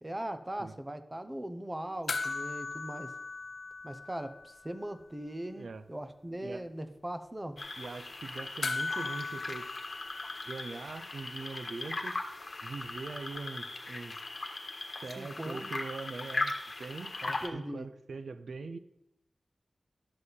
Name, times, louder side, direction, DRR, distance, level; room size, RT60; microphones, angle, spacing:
voice 1, 0.0-3.1 3.8-7.6 15.2-15.7 17.4-17.9, right 1 dB, 20° right, 9 dB, 0.8 m, -39 dB
sound 1, 2.1-4.7 5.0-5.1 8.6-11.2 13.4-13.5, left 3 dB, 75° left, 0.6 m, -38 dB
sound 2, 7.6-17.5, left 2 dB, 50° left, 1.4 m, -39 dB
voice 2, 7.8-9.7 10.4-12.2 12.6-14.2 15.0-16.5 16.8-18.8, right 4 dB, 90° right, 11 dB, 0.5 m, -42 dB
12.0 x 7.5 x 4.1 m, 0.81 s
wide cardioid pair, 100°, 0 cm